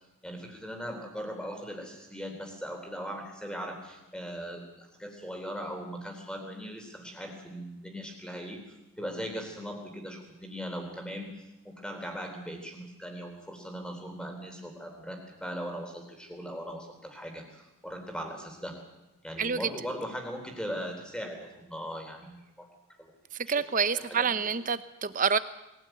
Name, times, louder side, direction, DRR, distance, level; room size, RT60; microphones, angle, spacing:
voice 1, 0.2-8.6 9.0-11.3 11.6-18.8 19.2-22.7 23.0-23.1 23.5-24.5, equal, 5° left, 4 dB, 3.6 m, -39 dB
voice 2, 23.5-25.4, right 6 dB, 35° right, 13 dB, 0.9 m, -27 dB
22.0 x 16.5 x 9.2 m, 0.96 s
head